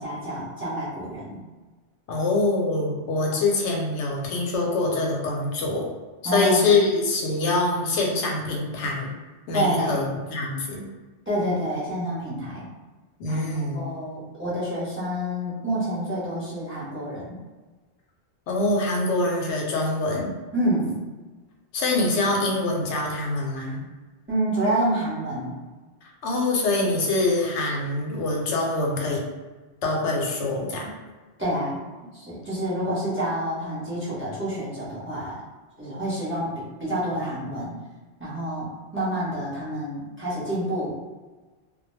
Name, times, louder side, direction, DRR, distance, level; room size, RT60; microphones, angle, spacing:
voice 1, 0.0-1.4 3.2-3.4 6.2-6.7 9.5-10.0 11.3-12.6 13.3-17.4 20.5-21.1 24.3-25.6 31.4-31.8 32.1-35.4 35.8-37.7 38.2-41.1, right 1 dB, 15° right, -9 dB, 0.7 m, -28 dB
voice 2, 2.1-5.8 6.3-9.2 9.5-10.1 10.3-10.8 13.2-13.8 18.5-20.3 21.7-23.8 26.0-29.2 29.8-30.9, left 2 dB, 85° left, -1 dB, 0.9 m, -24 dB
2.2 x 2.1 x 3.1 m, 1.3 s
omnidirectional pair, 1.2 m